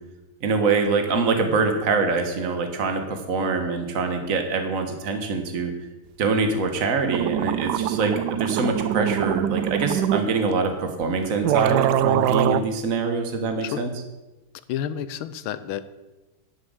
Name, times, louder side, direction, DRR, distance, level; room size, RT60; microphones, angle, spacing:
voice 1, 0.4-5.7 6.2-13.9, right 4 dB, 40° right, 5 dB, 1.8 m, -24 dB
sound 1, 6.8-6.9 7.1-10.3 11.0-11.1 11.4-12.6, right 11 dB, 75° right, 0.9 m, -23 dB
voice 2, 14.7-15.8, left 10 dB, 75° left, 14 dB, 1.5 m, -30 dB
11.5 x 7.9 x 8.0 m, 1.1 s
omnidirectional pair, 2.3 m